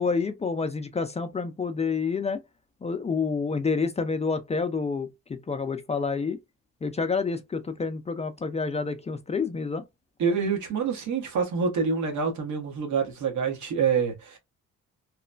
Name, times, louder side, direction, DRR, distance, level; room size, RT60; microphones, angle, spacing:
voice 1, 0.0-2.4 2.8-6.4 6.8-9.8, left 4 dB, 20° left, 0.4 m, -28 dB
voice 2, 10.2-14.4, right 5 dB, 75° right, 1.2 m, -26 dB
3.0 x 2.1 x 2.4 m
cardioid pair, 90°, 30 cm